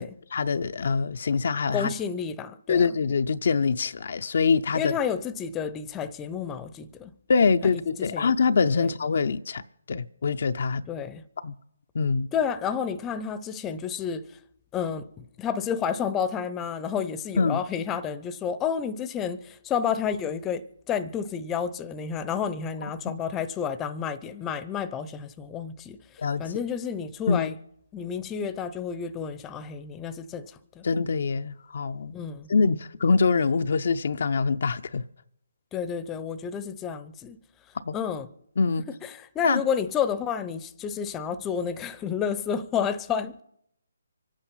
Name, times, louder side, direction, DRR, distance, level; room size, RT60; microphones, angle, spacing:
voice 1, 0.3-1.9 2.7-5.0 7.3-9.6 9.9-10.9 11.4-11.5 11.9-12.3 17.4-17.6 22.8-22.9 26.2-26.6 27.3-27.5 30.8-32.2 32.5-35.0 37.8-37.9 38.6-38.8 39.4-39.6, left 5 dB, 60° left, 0.5 m, -24 dB
voice 2, 1.7-2.9 4.7-7.1 8.0-8.3 8.8-8.9 10.9-11.2 12.3-14.3 14.7-26.0 26.4-27.6 27.9-30.9 32.1-32.5 35.7-37.4 37.9-38.3 39.0-43.4, left 7 dB, 15° left, 0.7 m, -30 dB
24.5 x 8.9 x 5.7 m
figure-of-eight pair, 145°, 0 cm